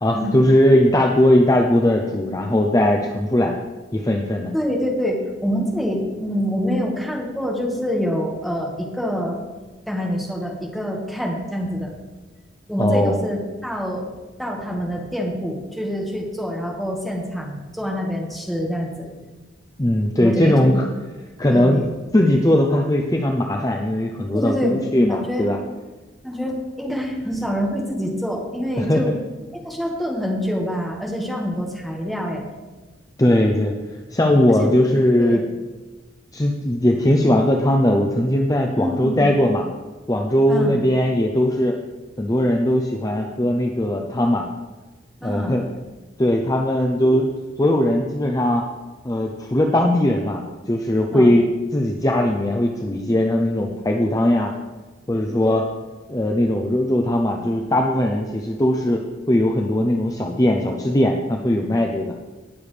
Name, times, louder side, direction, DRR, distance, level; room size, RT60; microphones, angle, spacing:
voice 1, 0.0-3.6 3.9-4.5 12.8-13.2 19.8-20.8 21.4-21.8 22.1-25.6 28.8-29.2 33.2-33.7 34.1-35.4 36.3-39.6 40.1-41.7 42.2-44.4 45.2-45.6 46.2-47.3 47.6-48.6 49.0-50.4 50.7-51.4 51.7-54.5 55.1-55.6 56.1-62.1, left 1 dB, 20° left, 2 dB, 0.6 m, -19 dB
voice 2, 4.5-9.4 9.9-11.9 12.7-14.1 14.4-19.1 20.2-20.8 21.5-21.9 24.3-24.8 25.1-25.5 26.2-29.1 29.5-32.4 34.5-35.4 38.7-39.3 40.5-40.8 45.2-45.6 51.1-51.3 55.3-55.5, equal, ahead, -2 dB, 1.7 m, -26 dB
19.0 x 6.9 x 3.4 m, 1.2 s
head